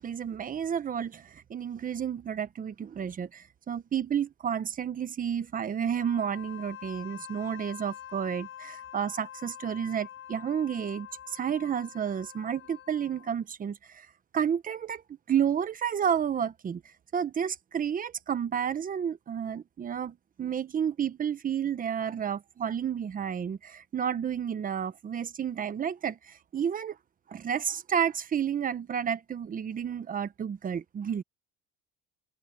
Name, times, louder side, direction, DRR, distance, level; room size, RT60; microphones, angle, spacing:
voice 1, 0.0-14.1 14.3-15.0 15.3-16.8 17.1-27.0 27.3-31.2, right 8 dB, 30° right, 1.1 m, -31 dB
Wind instrument woodwind instrument, 5.9-13.4, left 10 dB, 45° left, 5.4 m, -46 dB
cardioid pair, 140°, 30 cm